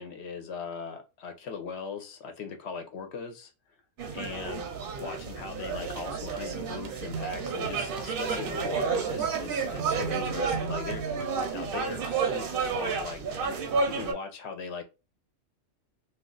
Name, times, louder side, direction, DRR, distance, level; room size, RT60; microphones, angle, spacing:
voice 1, 0.0-3.5 4.1-4.7 5.0-13.2 13.9-14.8, left 5 dB, 65° left, 0.8 m, -39 dB
sound 1, 4.0-14.1, right 5 dB, 55° right, 0.7 m, -31 dB
sound 2, 6.4-11.4, right 5 dB, 80° right, 0.9 m, -39 dB
2.3 x 2.3 x 3.7 m
omnidirectional pair, 1.3 m